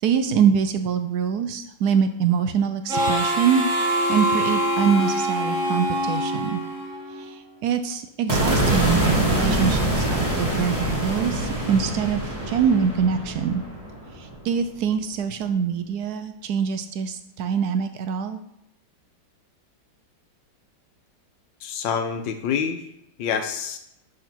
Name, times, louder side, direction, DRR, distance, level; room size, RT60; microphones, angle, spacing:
voice 1, 0.0-6.6 7.1-13.6 14.1-18.4, right 7 dB, 70° right, 8 dB, 1.0 m, -24 dB
Harmonica, 2.9-7.4, equal, 45° right, 1.7 m, -24 dB
sound 1, 8.3-14.5, right 1 dB, 20° right, 1.8 m, -24 dB
voice 2, 21.6-22.8 23.2-23.8, left 7 dB, 80° left, 7 dB, 1.5 m, -27 dB
11.0 x 3.9 x 4.4 m, 0.77 s
omnidirectional pair, 2.0 m